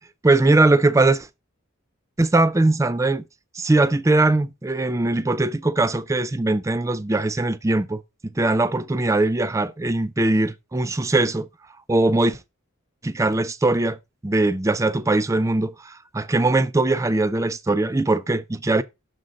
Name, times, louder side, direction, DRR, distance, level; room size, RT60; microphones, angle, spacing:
voice 1, 0.2-1.3 2.2-3.2 3.5-11.5 11.9-12.4 13.0-14.0 14.2-18.8, right 2 dB, 15° right, 0.4 m, -21 dB
6.4 x 3.8 x 6.3 m
head